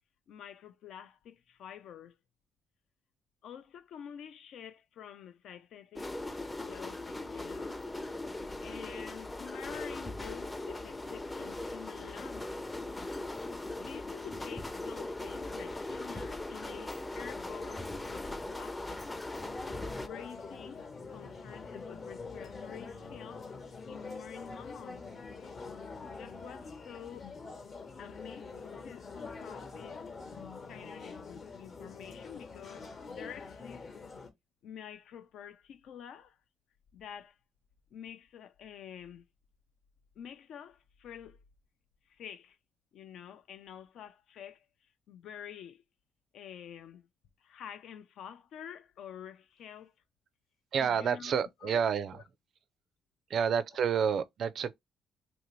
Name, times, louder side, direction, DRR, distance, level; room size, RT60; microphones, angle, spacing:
voice 1, 0.3-2.2 3.4-6.2 6.6-7.8 8.6-12.5 13.8-19.0 20.0-23.5 23.9-25.1 26.1-27.3 28.0-30.1 30.7-33.9 34.6-36.4 36.9-37.4 37.9-39.3 40.2-41.4 42.1-42.6 42.9-45.8 46.3-47.1 47.4-49.9 50.8-51.8 52.1-52.2, left 9 dB, 75° left, 0.5 m, -48 dB
sound 1, 6.0-20.1, left 2 dB, 20° left, 0.5 m, -39 dB
sound 2, 19.4-34.3, left 4 dB, 50° left, 1.0 m, -45 dB
voice 2, 50.7-52.2 53.3-54.7, right 7 dB, 60° right, 0.4 m, -29 dB
2.9 x 2.7 x 3.0 m
cardioid pair, 90°, 0 cm